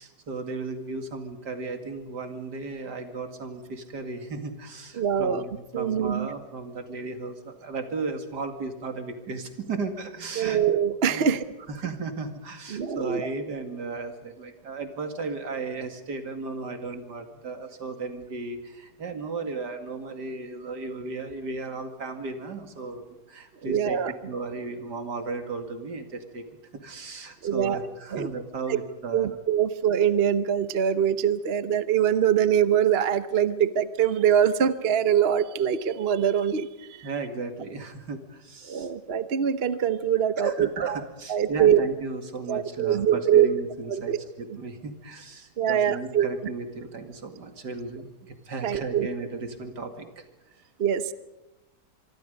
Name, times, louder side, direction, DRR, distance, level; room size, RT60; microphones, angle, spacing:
voice 1, 0.0-10.6 11.0-11.3 11.7-24.0 24.2-26.4 26.7-29.4 37.0-38.9 40.4-50.2, right 4 dB, 70° right, 7 dB, 2.9 m, -35 dB
voice 2, 4.9-5.5 5.7-6.3 10.4-11.4 12.7-13.3 23.6-24.1 27.4-27.8 28.1-28.3 28.7-28.8 29.1-37.1 38.6-41.0 41.3-41.8 42.5-43.5 43.9-44.2 44.5-44.6 45.6-46.3 48.6-49.1 50.8-51.1, right 9 dB, 45° right, 12 dB, 1.0 m, -23 dB
25.5 x 24.5 x 5.3 m, 0.98 s
omnidirectional pair, 1.8 m